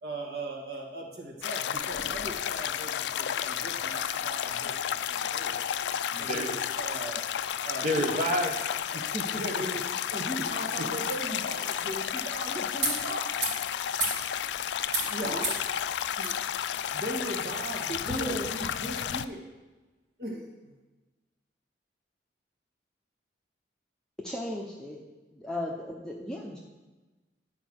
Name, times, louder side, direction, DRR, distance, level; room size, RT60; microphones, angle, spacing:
voice 1, 0.0-5.6 6.1-7.2 7.6-8.3 9.3-9.8 10.1-13.5 15.0-15.6 16.2-16.3 16.9-19.5 20.2-20.5, right 1 dB, 65° right, -1 dB, 1.8 m, -38 dB
sound 1, 1.4-19.3, left 9 dB, 80° left, 0.3 m, -32 dB
sound 2, 1.7-18.6, right 2 dB, 85° right, 2.9 m, -41 dB
voice 2, 6.1-6.5 7.8-9.6 10.8-10.9, equal, 40° right, 3 dB, 0.9 m, -31 dB
voice 3, 18.1-18.5 24.2-25.0 25.3-26.6, equal, 5° left, -3 dB, 0.7 m, -35 dB
10.0 x 4.7 x 6.2 m, 1.2 s
head